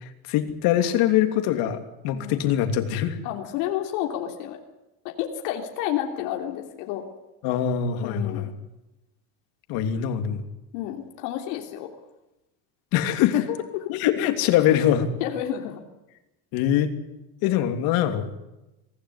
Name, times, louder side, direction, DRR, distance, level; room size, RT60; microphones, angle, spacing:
voice 1, 0.0-3.2 7.4-8.5 9.7-10.4 12.9-13.5 13.9-15.1 16.5-16.9 17.4-18.3, left 10 dB, 65° left, 7 dB, 3.0 m, -23 dB
voice 2, 3.2-4.6 5.0-7.0 8.0-8.5 10.7-11.9 13.7-13.8 15.2-15.8, left 11 dB, 85° left, 2 dB, 3.3 m, -30 dB
24.5 x 16.0 x 9.7 m, 0.97 s
cardioid pair, 165°, 40 cm